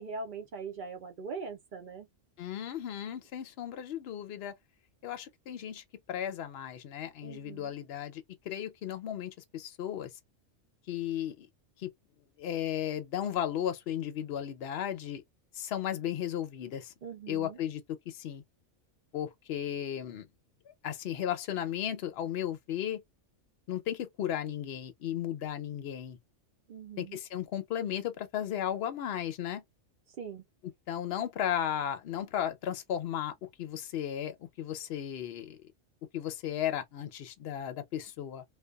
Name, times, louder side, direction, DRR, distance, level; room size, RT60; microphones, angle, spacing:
voice 1, 0.0-2.1 7.2-7.7 17.0-17.6 26.7-27.2 30.2-30.4, right 5 dB, 60° right, 0.5 m, -41 dB
voice 2, 2.4-4.6 5.0-10.1 10.9-11.5 11.8-11.9 12.4-15.2 15.5-16.9 17.3-18.4 19.1-20.3 20.8-23.0 23.7-26.2 27.0-29.6 30.6-35.6 36.1-38.4, left 10 dB, 60° left, 0.8 m, -35 dB
2.7 x 2.2 x 2.2 m
omnidirectional pair, 1.3 m